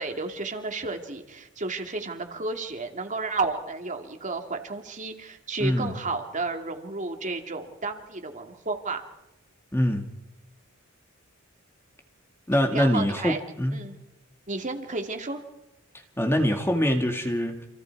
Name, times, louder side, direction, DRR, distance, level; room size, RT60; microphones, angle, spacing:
voice 1, 0.0-9.1 12.7-13.4 13.7-14.0 14.5-15.4, right 3 dB, 35° right, 2.6 m, -32 dB
voice 2, 5.6-5.9 9.7-10.1 12.5-13.8 16.2-17.7, equal, 10° left, 1.9 m, -24 dB
29.5 x 28.0 x 4.8 m
head